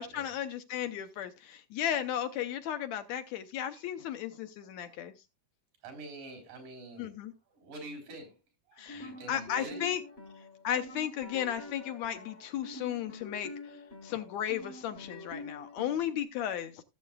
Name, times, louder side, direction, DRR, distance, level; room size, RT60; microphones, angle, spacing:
voice 1, 0.0-5.1 7.0-7.3 8.8-10.0 10.6-13.5 14.0-16.8, left 10 dB, 75° left, 9 dB, 1.9 m, -34 dB
voice 2, 3.7-4.1 4.8-4.9 5.8-7.2 7.5-8.4 8.7-9.8, right 2 dB, 90° right, 5 dB, 5.1 m, -47 dB
sound 1, 8.8-16.2, left 2 dB, 40° left, 0.8 m, -46 dB
17.0 x 7.5 x 2.3 m, 0.26 s
omnidirectional pair, 3.5 m